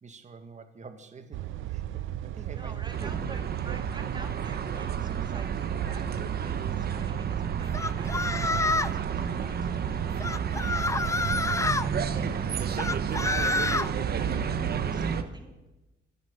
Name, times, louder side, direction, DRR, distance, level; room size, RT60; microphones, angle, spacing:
voice 1, 0.0-2.8 3.0-3.1 11.0-11.4, right 4 dB, 35° right, 8 dB, 1.8 m, -47 dB
sound 1, 1.3-14.9, right 11 dB, 80° right, 0.6 m, -35 dB
voice 2, 2.5-10.0 10.7-15.5, right 2 dB, 20° right, 4 dB, 2.7 m, -49 dB
sound 2, 2.9-15.2, right 6 dB, 50° right, 1.2 m, -32 dB
sound 3, 7.7-9.0 10.2-11.9 12.8-13.9, left 3 dB, 15° left, 0.6 m, -28 dB
14.0 x 10.5 x 6.7 m, 1.1 s
cardioid pair, 90°, 20 cm